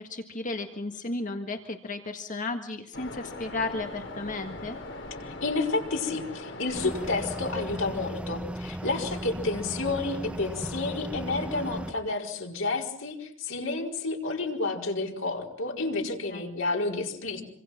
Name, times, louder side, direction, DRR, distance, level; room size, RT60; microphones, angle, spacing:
voice 1, 0.0-4.8 16.3-16.4, left 2 dB, 40° left, 5 dB, 1.7 m, -34 dB
Waves surf, 2.9-8.2, left 2 dB, 65° left, 4.2 m, -41 dB
voice 2, 5.2-17.4, left 3 dB, 80° left, 1 dB, 4.9 m, -30 dB
sound 1, 6.7-11.9, equal, 5° right, 1.4 m, -36 dB
26.5 x 26.5 x 6.0 m, 0.68 s
head